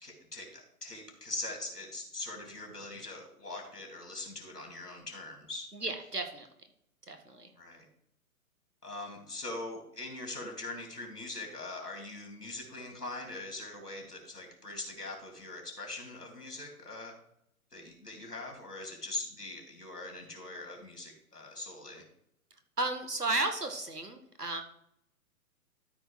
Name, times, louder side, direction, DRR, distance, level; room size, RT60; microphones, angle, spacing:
voice 1, 0.0-5.6 7.6-7.9 8.8-17.1 17.7-22.0, left 2 dB, 85° left, 1 dB, 3.2 m, -42 dB
voice 2, 5.7-6.5 7.1-7.5 22.8-24.6, right 2 dB, 90° right, 6 dB, 1.8 m, -33 dB
13.0 x 4.5 x 4.7 m, 0.74 s
figure-of-eight pair, 120°, 45 cm